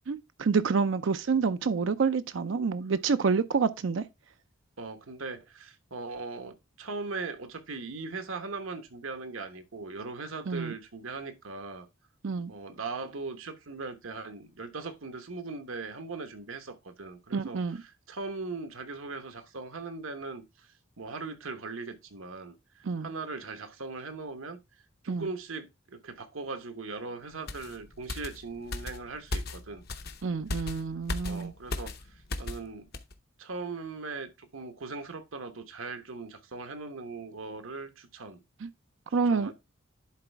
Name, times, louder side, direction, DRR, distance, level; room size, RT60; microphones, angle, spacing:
voice 1, 0.1-4.0 10.5-10.7 12.2-12.5 17.3-17.8 22.8-23.1 25.1-25.3 30.2-31.5 38.6-38.7 39.1-39.5, right 5 dB, 65° right, 0.4 m, -28 dB
voice 2, 4.8-11.9 12.5-20.7 21.0-24.6 25.0-29.8 31.3-32.9 33.4-38.4 39.2-39.5, right 3 dB, 80° right, 1.1 m, -39 dB
sound 1, 27.5-32.7 32.9-33.1, left 2 dB, 50° left, 0.8 m, -37 dB
10.5 x 4.1 x 3.4 m
head